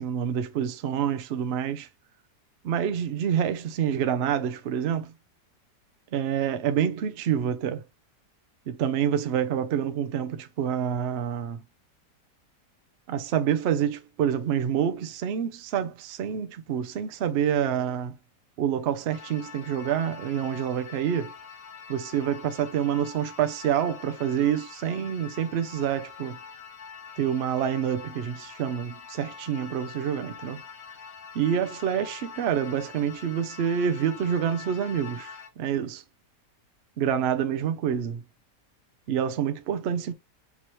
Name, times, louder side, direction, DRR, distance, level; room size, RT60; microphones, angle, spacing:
voice 1, 0.0-1.9 2.6-5.1 6.1-7.8 8.7-11.6 13.1-18.2 18.6-21.3 21.9-26.4 27.2-30.6 31.3-36.0 37.0-38.2 39.1-40.1, right 9 dB, 70° right, 0.6 m, -27 dB
sound 1, 19.1-35.5, left 6 dB, 60° left, 1.2 m, -44 dB
5.4 x 3.0 x 2.9 m
omnidirectional pair, 1.8 m